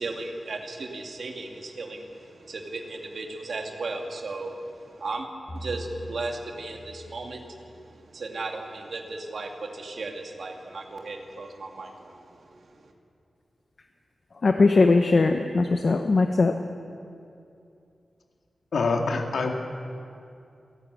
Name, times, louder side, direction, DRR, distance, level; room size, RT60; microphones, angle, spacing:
voice 1, 0.0-5.3 5.5-12.9, right 3 dB, 60° right, 2 dB, 2.5 m, -36 dB
sound 1, 5.5-7.7, equal, 25° left, 4.9 m, -41 dB
voice 2, 14.4-16.5, left 3 dB, 45° left, 5 dB, 0.9 m, -20 dB
voice 3, 18.7-19.5, left 4 dB, 85° left, 2 dB, 2.2 m, -25 dB
29.5 x 11.5 x 8.3 m, 2.6 s
wide cardioid pair, 175°, 0 cm